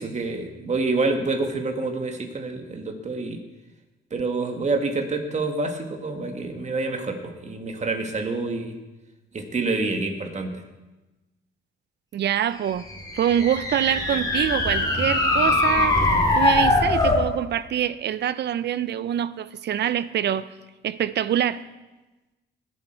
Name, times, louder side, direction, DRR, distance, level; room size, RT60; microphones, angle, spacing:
voice 1, 0.0-3.4 4.1-8.7 9.3-10.6, right 3 dB, 35° right, 2.0 m, -27 dB
voice 2, 12.1-12.8 13.1-16.0 16.3-20.5 20.8-21.6, right 10 dB, 60° right, 0.6 m, -25 dB
sound 1, 12.9-17.3, left 2 dB, 20° left, 2.7 m, -21 dB
19.5 x 7.9 x 4.6 m
cardioid pair, 90°, 20 cm